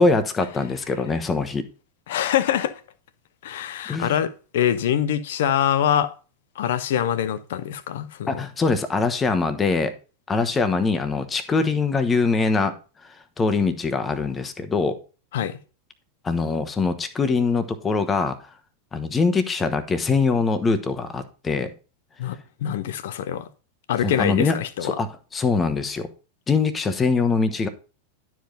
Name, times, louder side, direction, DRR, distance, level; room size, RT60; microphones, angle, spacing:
voice 1, 0.0-1.6 3.9-4.1 8.3-9.9 10.3-12.7 13.4-15.0 16.2-18.4 18.9-21.7 24.0-24.6 24.8-26.1 26.5-27.7, left 4 dB, 15° left, 1.1 m, -23 dB
voice 2, 2.1-2.8 3.4-6.1 6.6-8.4 15.3-15.6 22.2-23.5 23.9-25.0, left 10 dB, 55° left, 0.9 m, -24 dB
11.5 x 4.9 x 5.3 m
figure-of-eight pair, 90°, 0 cm